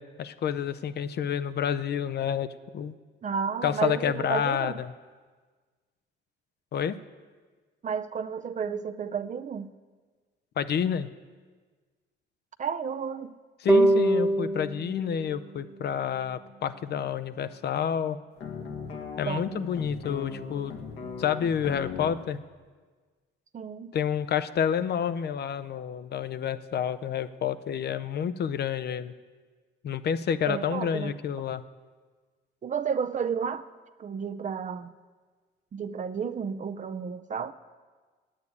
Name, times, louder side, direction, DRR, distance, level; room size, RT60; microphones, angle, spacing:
voice 1, 0.0-2.5 2.7-3.0 3.6-4.9 6.7-6.9 10.6-11.1 13.6-18.2 19.2-20.7 21.2-22.4 23.9-29.1 29.8-31.6, left 8 dB, 55° left, 0.6 m, -29 dB
voice 2, 3.2-4.8 7.8-9.7 12.6-13.3 19.2-19.7 23.5-23.9 30.5-31.1 32.6-33.7 34.0-34.9 35.7-37.5, right 6 dB, 40° right, 0.5 m, -32 dB
sound 1, 13.7-16.9, right 1 dB, 10° right, 1.1 m, -26 dB
sound 2, 18.4-22.2, left 5 dB, 85° left, 1.6 m, -38 dB
9.4 x 8.8 x 8.4 m
cardioid pair, 90°, 20 cm